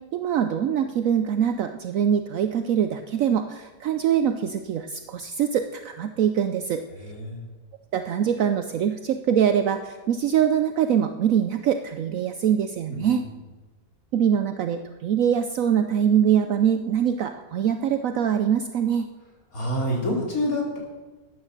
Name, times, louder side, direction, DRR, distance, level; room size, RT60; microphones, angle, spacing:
voice 1, 0.0-6.8 7.9-13.3 14.1-19.1, right 8 dB, 65° right, 9 dB, 1.0 m, -23 dB
voice 2, 7.0-7.4 12.9-13.1 19.5-20.8, left 1 dB, 65° left, -2 dB, 4.0 m, -27 dB
13.5 x 9.1 x 6.5 m, 1.3 s
omnidirectional pair, 1.6 m